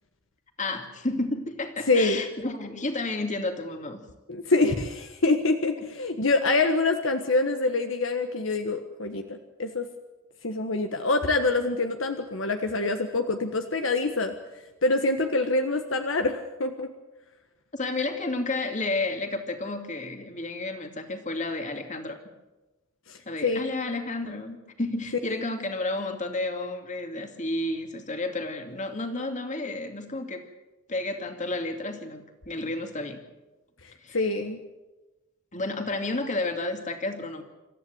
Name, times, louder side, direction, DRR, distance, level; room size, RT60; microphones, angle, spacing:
voice 1, 0.6-4.0 17.7-22.2 23.3-30.4 30.9-33.2 34.0-34.2 35.5-37.4, left 2 dB, 40° left, 5 dB, 2.6 m, -31 dB
voice 2, 1.9-2.2 4.3-9.9 10.4-14.3 14.8-16.9 23.1-23.7 25.3-25.4 34.1-34.6, left 3 dB, 70° left, 6 dB, 1.4 m, -25 dB
27.0 x 14.0 x 7.9 m, 1.1 s
head